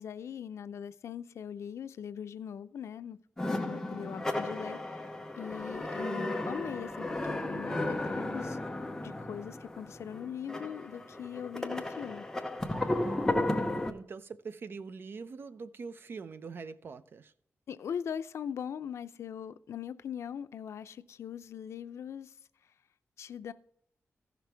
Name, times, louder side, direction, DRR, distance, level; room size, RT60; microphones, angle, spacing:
voice 1, 0.0-3.2 3.5-5.1 5.4-8.6 9.0-12.3 17.7-22.3 23.2-23.5, left 8 dB, 90° left, 0.5 m, -41 dB
sound 1, 3.4-13.9, left 1 dB, 10° left, 0.8 m, -34 dB
voice 2, 13.8-17.3, right 5 dB, 55° right, 0.5 m, -43 dB
14.5 x 5.9 x 3.4 m
wide cardioid pair, 150°, 5 cm